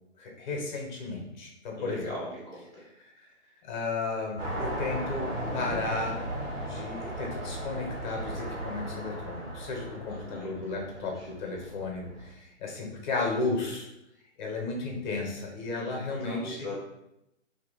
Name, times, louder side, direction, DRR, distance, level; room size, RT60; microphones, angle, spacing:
voice 1, 0.2-2.1 3.0-3.1 3.6-6.2 6.5-13.9 14.4-16.7, left 3 dB, 35° left, 0 dB, 0.9 m, -34 dB
voice 2, 1.8-2.8 10.1-10.8 11.1-11.3 15.7-16.8, left 1 dB, 15° right, -13 dB, 0.3 m, -40 dB
sound 1, 4.4-12.3, right 1 dB, 80° right, 1.4 m, -36 dB
2.8 x 2.4 x 4.0 m, 0.85 s
hypercardioid pair, 140°, 38 cm